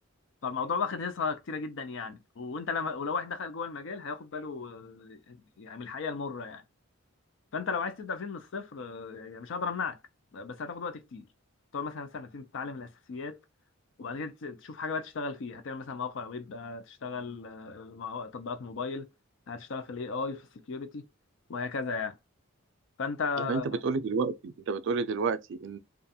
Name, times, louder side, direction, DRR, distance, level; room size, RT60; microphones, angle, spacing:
voice 1, 0.4-6.6 7.5-10.0 10.3-11.3 11.7-13.4 14.0-19.1 19.5-21.1 21.5-22.2 23.0-24.1, left 5 dB, 60° left, 0.4 m, -35 dB
voice 2, 23.4-25.8, right 4 dB, 60° right, 0.3 m, -30 dB
2.5 x 2.3 x 2.6 m
head